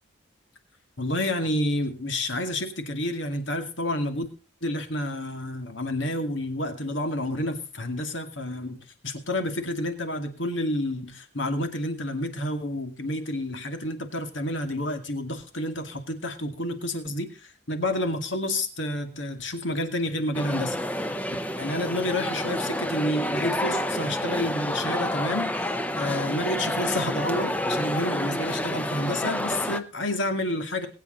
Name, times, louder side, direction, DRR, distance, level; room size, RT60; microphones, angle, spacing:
voice 1, 1.0-4.3 4.6-17.4 17.7-20.8 21.6-30.9, left 1 dB, 70° left, 6 dB, 2.3 m, -29 dB
sound 1, 20.3-29.8, left 1 dB, 5° left, 0.7 m, -29 dB
21.0 x 8.8 x 4.0 m, 0.35 s
head